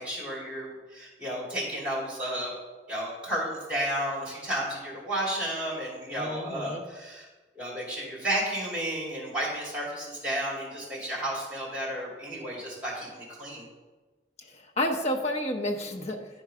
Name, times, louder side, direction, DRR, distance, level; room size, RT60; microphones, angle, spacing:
voice 1, 0.0-2.5 2.9-7.3 7.5-13.6, right 1 dB, 5° right, -4 dB, 2.9 m, -32 dB
voice 2, 6.1-6.8 14.4-16.3, left 1 dB, 40° left, 2 dB, 0.9 m, -30 dB
10.5 x 4.6 x 4.9 m, 1.2 s
head